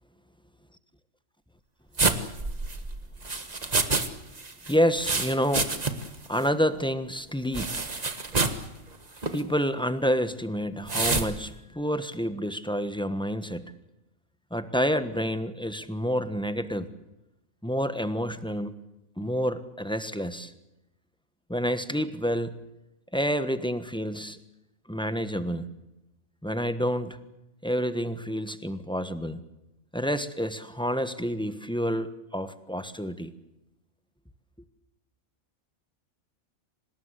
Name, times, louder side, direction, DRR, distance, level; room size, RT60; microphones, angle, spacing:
sound 1, 2.0-4.1 4.4-6.2 6.4-6.5 7.5-8.6 9.2-9.4 10.9-11.3, right 3 dB, 30° right, 1.6 m, -27 dB
voice 1, 4.7-5.7 6.3-7.8 9.3-13.7 14.5-16.9 17.6-18.7 19.2-20.5 21.5-22.5 23.1-24.4 24.9-25.7 26.4-27.2 27.6-29.4 29.9-33.3, equal, 5° left, 11 dB, 1.1 m, -28 dB
26.0 x 19.0 x 8.3 m, 0.94 s
omnidirectional pair, 1.5 m